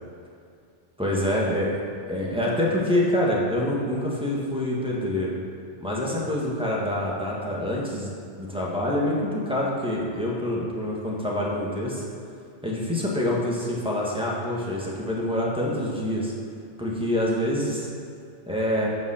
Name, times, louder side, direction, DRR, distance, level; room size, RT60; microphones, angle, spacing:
voice 1, 1.0-1.8 2.1-5.4 5.8-12.1 12.6-16.3 16.8-17.9 18.5-18.9, left 1 dB, 5° right, -5 dB, 1.7 m, -26 dB
9.4 x 5.4 x 6.6 m, 2.4 s
omnidirectional pair, 1.2 m